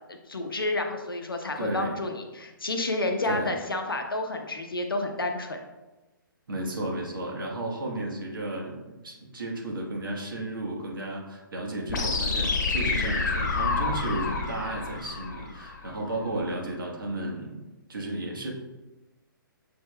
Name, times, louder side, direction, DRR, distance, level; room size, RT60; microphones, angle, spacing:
voice 1, 0.1-5.6, left 2 dB, 85° left, 4 dB, 0.7 m, -30 dB
voice 2, 1.6-2.0 3.3-3.6 6.5-18.5, right 1 dB, 70° right, -1 dB, 1.3 m, -33 dB
sound 1, 11.9-15.9, left 4 dB, 55° left, 1.0 m, -28 dB
6.7 x 3.6 x 2.2 m, 1.1 s
figure-of-eight pair, 135°, 12 cm